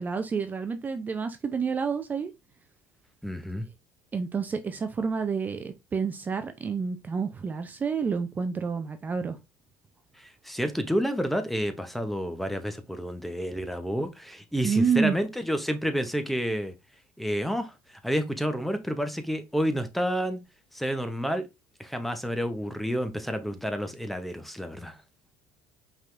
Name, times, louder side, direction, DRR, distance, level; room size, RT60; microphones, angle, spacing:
voice 1, 0.0-2.3 4.1-9.4 14.6-15.1, right 5 dB, 25° right, 0.5 m, -29 dB
voice 2, 3.2-3.7 10.1-16.7 17.2-20.4 20.7-21.5 21.8-25.0, equal, ahead, 0.8 m, -30 dB
5.2 x 3.7 x 2.5 m
supercardioid pair, 95°, 6 cm